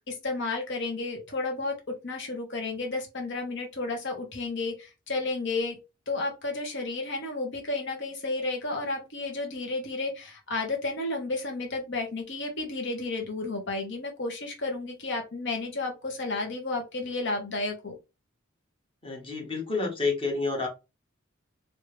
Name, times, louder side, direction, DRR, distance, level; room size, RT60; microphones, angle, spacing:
voice 1, 0.1-5.8 6.1-18.0, left 3 dB, 60° left, 3 dB, 1.3 m, -32 dB
voice 2, 19.0-20.7, left 3 dB, 25° left, 2 dB, 1.2 m, -29 dB
3.2 x 2.8 x 3.3 m, 0.26 s
head